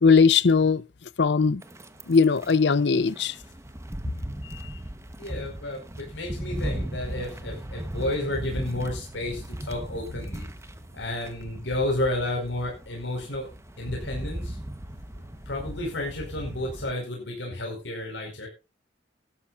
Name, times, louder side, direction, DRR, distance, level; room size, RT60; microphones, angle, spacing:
voice 1, 0.0-0.8 1.2-1.6 2.1-3.4 4.5-4.7, left 5 dB, 65° left, 0.6 m, -19 dB
sound 1, 1.6-16.9, right 1 dB, 15° right, 1.1 m, -37 dB
voice 2, 5.2-10.5 10.9-13.5 13.8-14.6 15.5-18.5, left 1 dB, 85° left, 4.9 m, -31 dB
18.5 x 12.5 x 2.5 m
head